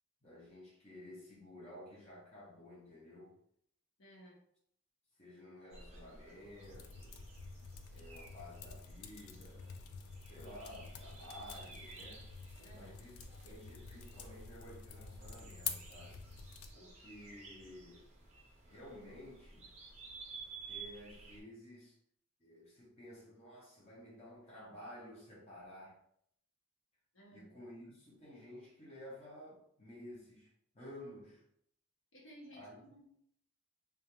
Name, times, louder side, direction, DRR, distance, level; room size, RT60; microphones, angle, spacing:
voice 1, 0.2-3.4 5.2-7.2 7.9-9.8 10.3-12.3 12.7-16.2 16.7-18.0 18.6-19.7 20.7-22.0 22.4-26.0 27.3-31.4 32.5-32.8, left 1 dB, 30° left, -6 dB, 0.6 m, -53 dB
voice 2, 4.0-4.4 12.6-13.0 16.8-16.9 27.1-27.5 32.1-33.1, right 1 dB, 70° left, -4 dB, 0.9 m, -57 dB
sound 1, 5.7-21.4, right 4 dB, 30° right, 0.5 m, -55 dB
sound 2, 6.6-16.7, left 6 dB, 85° left, 0.3 m, -48 dB
2.4 x 2.2 x 2.9 m, 0.71 s
head